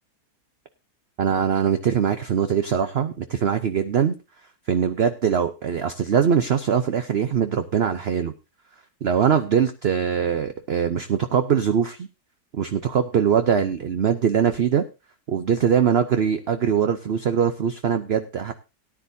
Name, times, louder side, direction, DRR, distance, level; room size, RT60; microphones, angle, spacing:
voice 1, 1.2-4.2 4.7-8.3 9.0-12.1 12.5-14.8 15.3-18.5, right 8 dB, 55° right, 8 dB, 0.8 m, -22 dB
18.0 x 10.0 x 2.7 m, 0.28 s
omnidirectional pair, 1.7 m